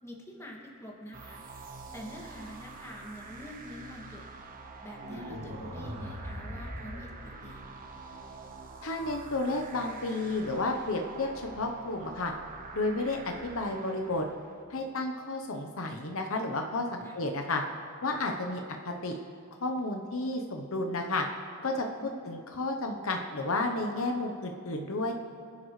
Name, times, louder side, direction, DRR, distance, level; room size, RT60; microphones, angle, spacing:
voice 1, 0.0-4.2 4.8-7.7 17.0-17.2 22.0-22.3, equal, 15° left, -2 dB, 2.1 m, -46 dB
sound 1, 1.1-14.6, right 3 dB, 40° right, 1.2 m, -46 dB
sound 2, 4.9-7.9, equal, 75° right, 3.5 m, -41 dB
voice 2, 8.8-12.3 12.7-14.3 14.7-17.6 18.0-19.2 19.6-21.2 21.6-21.9 22.2-25.1, left 2 dB, 65° left, 3 dB, 0.9 m, -32 dB
26.5 x 10.5 x 3.2 m, 2.3 s
head